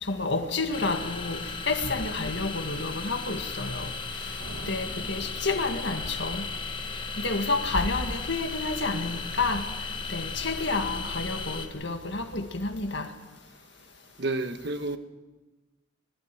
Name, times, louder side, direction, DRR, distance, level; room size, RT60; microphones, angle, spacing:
voice 1, 0.0-3.9 4.7-6.5 7.2-9.6 10.1-13.1, left 3 dB, 55° left, 1.8 m, -30 dB
sound 1, 0.7-11.7, left 4 dB, 25° left, 1.3 m, -36 dB
sound 2, 4.4-6.4, right 2 dB, 80° right, 1.2 m, -46 dB
voice 2, 14.2-15.0, right 2 dB, 55° right, 1.2 m, -31 dB
21.0 x 12.5 x 10.0 m
head